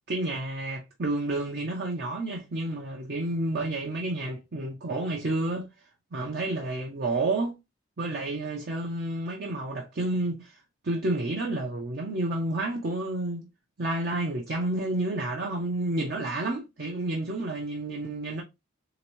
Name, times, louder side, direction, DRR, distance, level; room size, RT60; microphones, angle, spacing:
voice 1, 0.1-5.7 6.1-7.6 8.0-10.6 10.8-13.5 13.8-18.4, right 2 dB, 50° right, 0.6 m, -30 dB
3.4 x 2.9 x 2.9 m
head